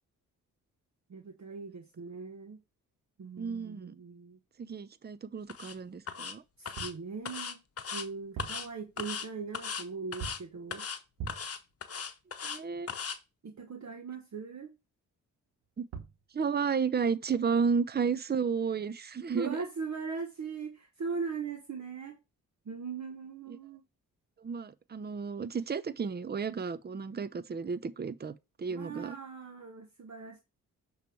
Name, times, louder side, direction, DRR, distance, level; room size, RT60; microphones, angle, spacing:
voice 1, 1.1-2.6 3.2-4.4 6.6-7.6 7.9-10.8 13.4-14.7 19.3-22.2 22.7-23.8 28.7-30.4, right 5 dB, 45° right, 1.2 m, -40 dB
voice 2, 3.4-4.0 4.6-6.4 12.4-12.9 15.8-15.9 16.3-19.6 23.5-23.6 24.4-29.2, right 6 dB, 25° right, 0.6 m, -32 dB
sound 1, 5.5-5.7 6.1-6.3 6.7-6.9 7.3-8.1 8.4-8.7 9.0-9.3 9.5-9.8 10.1-10.4 10.7-11.0 11.3-12.6 12.9-13.2, left 6 dB, 40° left, 1.0 m, -38 dB
sound 2, 6.6-7.1 8.2-8.7 10.2-10.6 11.2-11.6 15.6-15.7 15.9-16.2, right 6 dB, 75° right, 1.1 m, -42 dB
6.6 x 3.2 x 4.7 m
supercardioid pair, 45°, 38 cm